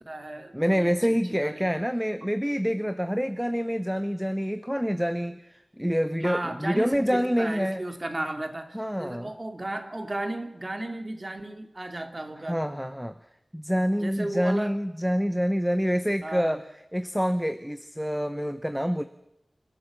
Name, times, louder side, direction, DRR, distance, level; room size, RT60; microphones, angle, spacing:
voice 1, 0.0-1.7 6.2-12.7 14.0-14.7 16.2-16.6, right 1 dB, 40° right, 7 dB, 2.4 m, -34 dB
voice 2, 0.5-7.8 8.7-9.3 12.5-13.1 13.5-16.6 16.9-19.0, equal, ahead, 11 dB, 0.8 m, -27 dB
29.0 x 13.0 x 7.4 m, 0.84 s
wide cardioid pair, 75°, 0 cm